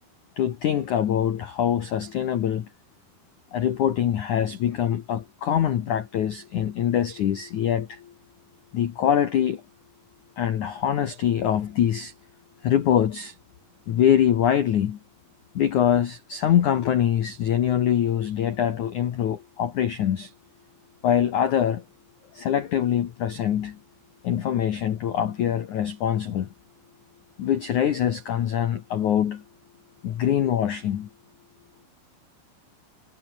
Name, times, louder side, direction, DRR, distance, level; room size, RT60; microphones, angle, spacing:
voice 1, 0.4-2.7 3.5-8.1 8.7-9.6 10.4-12.1 12.6-13.4 13.9-15.0 15.5-20.3 21.0-21.8 22.3-23.8 24.2-26.5 27.4-29.4 30.0-31.1, left 10 dB, 75° left, 1.8 m, -24 dB
omnidirectional pair, 5.8 m